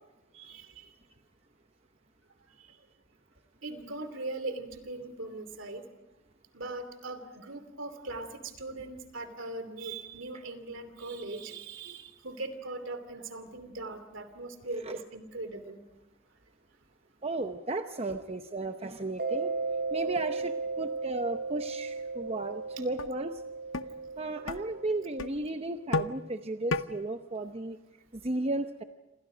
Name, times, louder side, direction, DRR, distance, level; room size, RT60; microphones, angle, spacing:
voice 1, 0.4-0.9 3.6-5.8 6.5-15.8, right 2 dB, 70° right, 9 dB, 2.9 m, -40 dB
voice 2, 17.2-19.5 19.9-23.4 24.2-27.8 28.1-28.8, right 2 dB, 30° right, 7 dB, 0.8 m, -34 dB
Mallet percussion, 19.2-25.6, right 4 dB, 50° right, 3.3 m, -36 dB
sound 1, 22.4-22.5 23.0-23.1 23.7-23.9 24.5-24.6 25.2-25.3 25.9-26.2 26.7-26.9, left 3 dB, 85° left, 0.8 m, -30 dB
28.5 x 27.0 x 5.1 m, 1.0 s
head